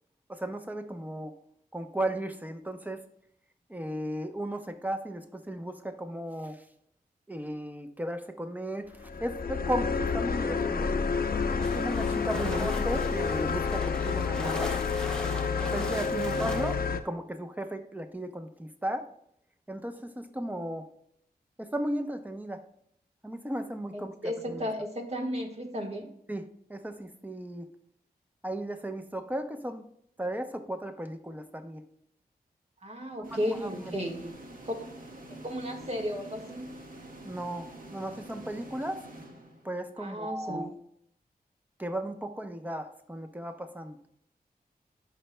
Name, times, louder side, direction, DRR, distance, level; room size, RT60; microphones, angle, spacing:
voice 1, 0.3-1.3 1.7-3.0 3.7-6.7 7.3-10.9 11.6-14.7 15.6-19.1 19.7-20.9 21.6-22.7 23.2-24.2 24.5-24.7 26.3-26.4 26.7-27.7 28.4-29.9 30.2-31.8 33.2-34.0 37.2-39.1 39.6-40.7 41.8-44.0, right 1 dB, 10° right, 7 dB, 0.8 m, -35 dB
sound 1, 9.0-17.0, left 5 dB, 65° left, 0.6 m, -29 dB
sound 2, 11.1-16.8, left 1 dB, 5° left, 1.1 m, -41 dB
voice 2, 12.4-12.8 16.2-16.3 23.9-26.1 32.8-34.3 34.6-34.9 35.4-36.7 40.0-40.7, equal, 40° right, 2 dB, 1.5 m, -34 dB
sound 3, 33.2-40.0, right 2 dB, 60° right, 1.4 m, -46 dB
16.5 x 5.5 x 2.2 m, 0.73 s
wide cardioid pair, 80°, 16 cm